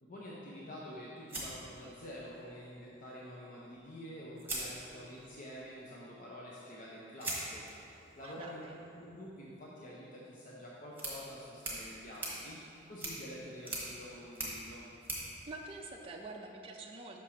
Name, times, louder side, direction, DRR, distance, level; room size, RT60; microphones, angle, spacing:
voice 1, 0.0-8.6 8.9-12.6 12.9-14.8, equal, 45° left, -5 dB, 0.7 m, -48 dB
sound 1, 1.3-2.4 3.8-3.9 4.4-5.4 7.2-16.4, right 2 dB, 10° right, 1.4 m, -44 dB
voice 2, 8.2-8.8 15.5-17.2, right 2 dB, 30° right, 0 dB, 0.4 m, -46 dB
5.9 x 4.4 x 6.3 m, 2.9 s
head